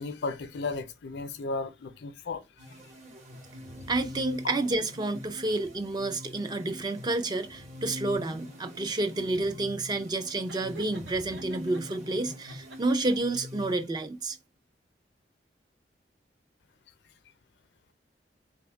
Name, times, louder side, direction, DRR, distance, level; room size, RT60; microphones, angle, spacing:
voice 1, 0.0-2.8, left 3 dB, 75° left, 0.4 m, -35 dB
sound 1, 2.6-14.3, left 1 dB, 40° right, 0.9 m, -45 dB
voice 2, 3.9-14.4, right 2 dB, 25° right, 0.3 m, -30 dB
Laughter, 10.5-12.0 12.4-13.3, right 2 dB, 85° right, 0.7 m, -48 dB
3.4 x 2.3 x 3.4 m
head